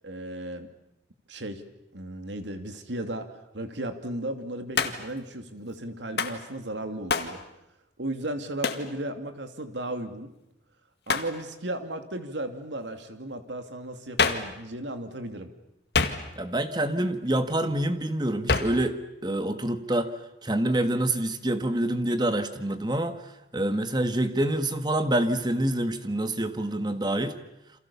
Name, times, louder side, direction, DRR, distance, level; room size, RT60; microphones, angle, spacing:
voice 1, 0.0-0.7 1.3-1.6 1.9-7.4 8.0-10.3 11.1-15.5, right 1 dB, 85° right, 7 dB, 2.7 m, -35 dB
Hands, 4.8-5.2 6.2-6.4 7.1-7.4 8.6-8.9 11.1-11.4 14.2-14.6 15.9-16.5 18.5-18.8, left 4 dB, 65° left, 2.0 m, -26 dB
voice 2, 16.4-20.1 20.4-23.2 23.5-27.4, right 1 dB, 25° right, 9 dB, 1.7 m, -26 dB
29.0 x 27.0 x 7.1 m, 0.85 s
head